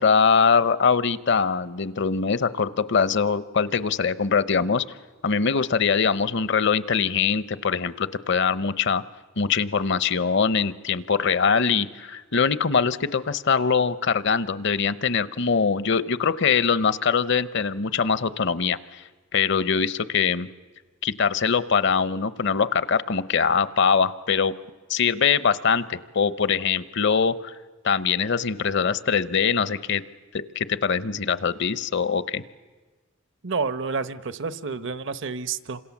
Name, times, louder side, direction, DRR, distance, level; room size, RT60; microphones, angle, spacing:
voice 1, 0.0-4.8 5.2-9.0 9.4-19.0 19.3-20.5 21.0-24.6 24.9-27.5 27.8-30.0 30.3-32.4, left 6 dB, 60° left, 15 dB, 0.8 m, -23 dB
voice 2, 33.4-35.8, right 4 dB, 65° right, 13 dB, 0.9 m, -29 dB
28.5 x 26.5 x 7.2 m, 1.3 s
head